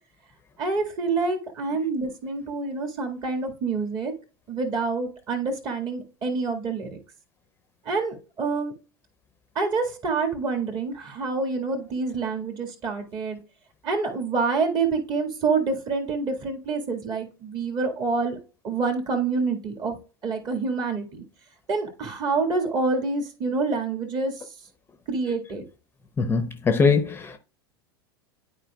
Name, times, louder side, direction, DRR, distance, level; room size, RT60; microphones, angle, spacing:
voice 1, 0.6-4.1 4.5-7.0 7.9-8.7 9.6-13.4 13.8-18.4 18.6-20.0 20.2-21.2 21.7-24.3 25.1-25.7, right 4 dB, 35° right, 1.9 m, -27 dB
voice 2, 26.2-27.4, left 5 dB, 15° left, 0.7 m, -22 dB
11.5 x 4.7 x 2.3 m
figure-of-eight pair, 85°, 13 cm